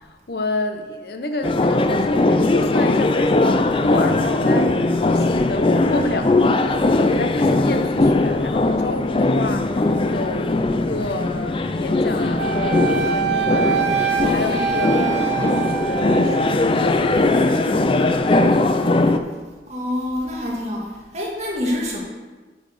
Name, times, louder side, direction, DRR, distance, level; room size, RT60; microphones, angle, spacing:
voice 1, 0.0-6.6 6.9-18.5, left 1 dB, 60° left, 7 dB, 0.8 m, -29 dB
sound 1, 1.4-19.2, left 2 dB, 30° left, 0.4 m, -19 dB
Wind instrument woodwind instrument, 12.4-16.6, right 7 dB, 80° right, 0.6 m, -24 dB
voice 2, 19.7-22.0, left 1 dB, 40° right, -3 dB, 2.0 m, -26 dB
9.9 x 4.2 x 6.5 m, 1.3 s
head